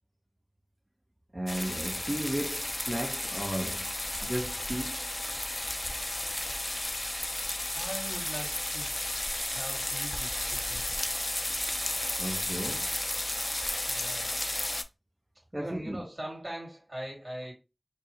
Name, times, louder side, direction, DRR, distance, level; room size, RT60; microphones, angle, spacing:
voice 1, 1.3-3.9 4.2-5.0 12.2-12.9 15.5-16.0, right 1 dB, 35° right, 0.4 m, -34 dB
sound 1, 1.5-14.8, left 1 dB, 50° left, 0.4 m, -33 dB
voice 2, 7.3-9.0 9.5-11.3 13.8-14.4 15.5-17.5, right 1 dB, 65° right, 2.0 m, -42 dB
4.5 x 2.0 x 2.8 m
wide cardioid pair, 45°, 0 cm